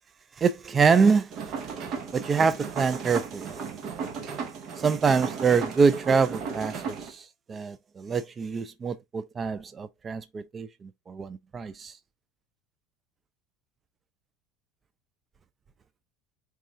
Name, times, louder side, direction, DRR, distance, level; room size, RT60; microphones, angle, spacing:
voice 1, 0.4-1.4 2.1-3.6 4.8-12.0, right 5 dB, 25° right, 0.4 m, -25 dB
sound 1, 1.3-7.1, right 6 dB, 45° right, 0.9 m, -35 dB
4.6 x 2.4 x 3.2 m
supercardioid pair, 115°, 0 cm